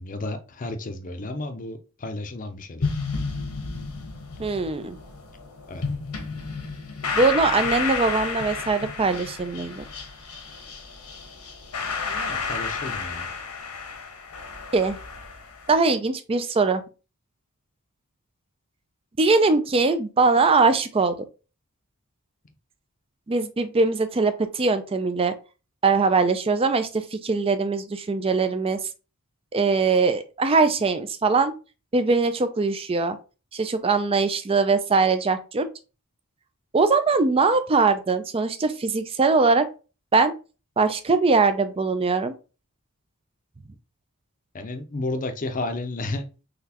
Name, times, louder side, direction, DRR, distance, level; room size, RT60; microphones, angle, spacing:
voice 1, 0.0-2.9 5.7-5.8 12.0-13.3 44.5-46.3, left 2 dB, 35° left, 6 dB, 0.6 m, -32 dB
sound 1, 2.8-15.7, left 4 dB, 90° left, 1.1 m, -32 dB
voice 2, 4.4-5.0 7.1-9.8 14.7-15.0 15.7-16.8 19.2-21.1 23.3-25.3 25.8-28.8 29.5-31.5 31.9-33.2 33.5-35.7 36.7-39.7 40.1-40.3 40.8-42.3, right 4 dB, 25° right, 10 dB, 0.4 m, -21 dB
4.0 x 3.1 x 2.9 m, 0.32 s
head